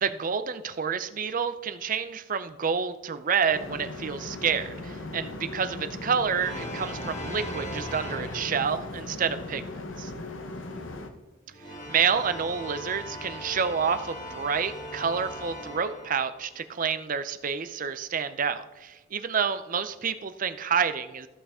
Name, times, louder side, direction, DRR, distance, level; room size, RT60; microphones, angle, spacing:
voice 1, 0.0-9.6 10.0-10.1 11.9-21.3, right 6 dB, 40° right, 11 dB, 0.5 m, -28 dB
sound 1, 3.5-11.1, left 2 dB, 65° left, 0.9 m, -38 dB
sound 2, 6.4-9.1 11.4-16.6, equal, 40° left, 3.5 m, -39 dB
14.5 x 5.6 x 3.6 m, 1.1 s
head